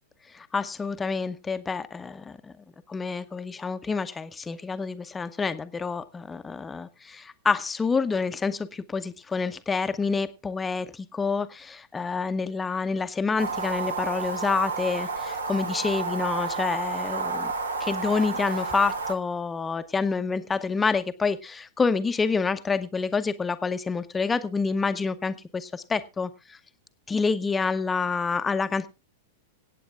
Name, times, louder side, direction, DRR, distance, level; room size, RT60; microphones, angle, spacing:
voice 1, 0.3-2.5 2.9-17.5 17.8-26.6 27.1-28.9, left 4 dB, 15° left, 11 dB, 0.7 m, -28 dB
sound 1, 13.4-19.1, right 4 dB, 75° right, 1.3 m, -31 dB
25.5 x 8.6 x 2.4 m, 0.27 s
figure-of-eight pair, 95°, 0 cm